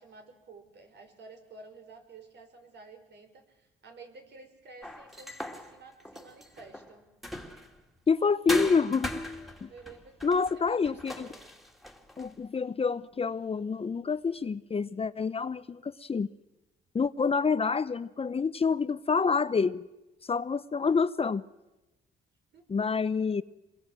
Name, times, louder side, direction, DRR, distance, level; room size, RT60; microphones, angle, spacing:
voice 1, 0.0-7.0 9.7-10.8 11.1-11.4 22.5-22.9, right 3 dB, 60° right, 5.9 m, -52 dB
sound 1, 4.8-7.8 8.5-12.4, left 1 dB, ahead, 2.9 m, -38 dB
voice 2, 8.1-9.2 9.6-9.7 10.2-11.3 12.2-16.3 16.9-19.8 20.2-21.4 22.7-23.4, left 5 dB, 30° left, 0.8 m, -28 dB
27.0 x 22.0 x 7.6 m
cardioid pair, 90°, 20 cm